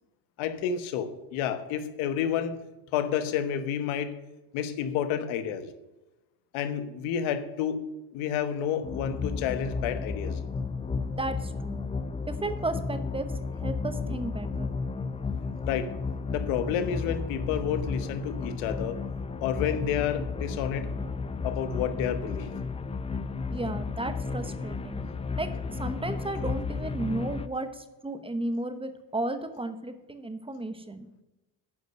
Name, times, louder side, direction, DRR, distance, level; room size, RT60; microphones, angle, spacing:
voice 1, 0.4-2.6 2.9-4.1 4.5-5.7 6.5-7.8 8.1-10.4 15.6-15.9 16.3-19.0 19.4-20.9 21.4-22.5, left 8 dB, 75° left, 10 dB, 1.3 m, -30 dB
sound 1, 8.8-27.5, left 4 dB, 15° left, 0.5 m, -33 dB
voice 2, 11.1-11.8 12.3-13.3 13.6-14.8 23.5-25.0 25.4-31.1, right 2 dB, 10° right, 9 dB, 1.0 m, -34 dB
9.1 x 5.4 x 7.8 m, 1.0 s
supercardioid pair, 90°, 47 cm